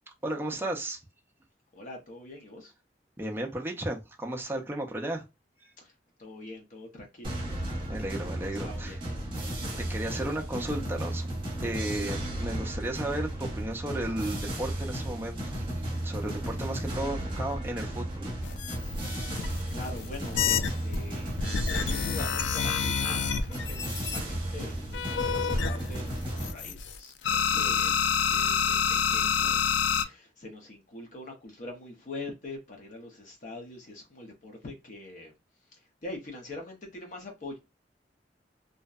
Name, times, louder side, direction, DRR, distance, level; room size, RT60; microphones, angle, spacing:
voice 1, 0.2-1.0 3.2-5.2 7.9-8.9 9.8-11.3 11.6-15.7 16.0-18.3, right 1 dB, 15° right, 0.4 m, -34 dB
voice 2, 1.7-2.7 5.8-7.4 8.5-9.6 16.4-16.6 19.1-35.3 35.7-37.6, left 2 dB, 45° left, 0.6 m, -44 dB
sound 1, 7.2-26.5, right 1 dB, 30° right, 0.8 m, -34 dB
sound 2, 18.4-21.0 21.4-24.2 24.9-27.0 27.2-30.1, left 7 dB, 85° left, 0.3 m, -28 dB
2.6 x 2.1 x 2.3 m
head